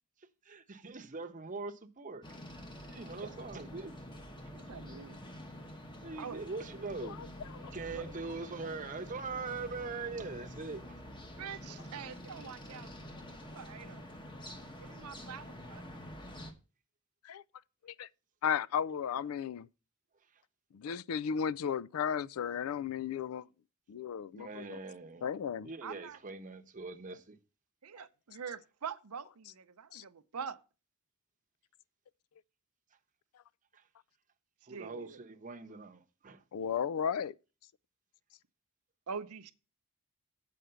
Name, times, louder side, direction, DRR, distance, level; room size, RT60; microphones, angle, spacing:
voice 1, 0.4-2.3 2.5-4.0 6.0-7.2 7.6-11.0 12.7-12.8 19.1-19.2 20.3-20.4 24.3-25.3 25.6-27.4 33.7-33.8 34.7-36.4, right 4 dB, 35° right, 0.9 m, -42 dB
sound 1, 2.2-16.5, equal, 20° left, 1.0 m, -47 dB
voice 2, 4.5-5.2 6.2-6.4 7.9-8.0 11.4-12.9 13.5-14.0 14.8-15.8 25.8-26.2 27.8-30.6 34.7-35.2 39.1-39.5, right 6 dB, 85° right, 0.7 m, -44 dB
voice 3, 18.4-19.7 20.7-23.4 23.9-24.8 25.2-25.7 29.9-30.0 36.5-37.3, left 7 dB, 70° left, 0.3 m, -34 dB
7.7 x 5.0 x 6.8 m
head